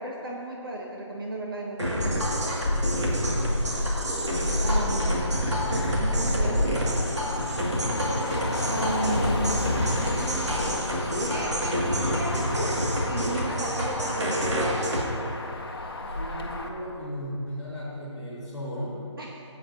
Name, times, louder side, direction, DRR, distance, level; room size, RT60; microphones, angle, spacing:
voice 1, 0.0-2.2 4.6-7.0 8.7-10.6 11.1-12.8 13.1-14.7 19.2-19.4, right 1 dB, 50° right, -2 dB, 1.0 m, -34 dB
sound 1, 1.8-15.0, equal, 65° right, 2.2 m, -28 dB
Motor vehicle (road), 2.0-16.7, left 2 dB, 50° left, 1.0 m, -31 dB
voice 2, 3.0-5.3 16.1-19.0, equal, 5° right, -16 dB, 2.7 m, -37 dB
15.5 x 8.8 x 2.8 m, 2.7 s
figure-of-eight pair, 175°, 16 cm